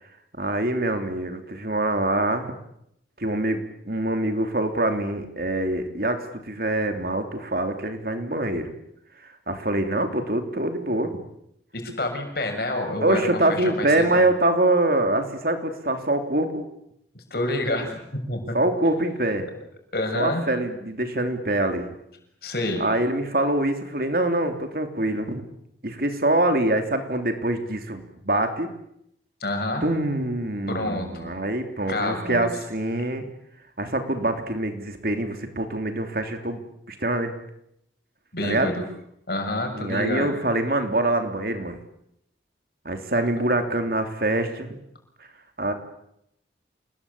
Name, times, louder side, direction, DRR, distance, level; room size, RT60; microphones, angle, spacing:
voice 1, 0.4-2.5 3.2-8.7 9.5-11.1 13.0-16.6 18.5-19.5 20.1-21.9 22.8-25.4 25.8-28.7 29.8-33.2 33.8-36.6 36.9-37.3 38.4-38.7 39.8-41.8 42.8-44.8 45.6-45.7, right 1 dB, 55° right, 6 dB, 3.3 m, -24 dB
voice 2, 11.7-14.3 17.1-18.6 19.9-20.4 22.4-22.8 29.4-29.9 30.7-31.3 31.9-32.5 38.3-38.9 39.3-40.4, left 1 dB, 55° left, 4 dB, 6.9 m, -28 dB
28.0 x 21.5 x 8.6 m, 0.78 s
head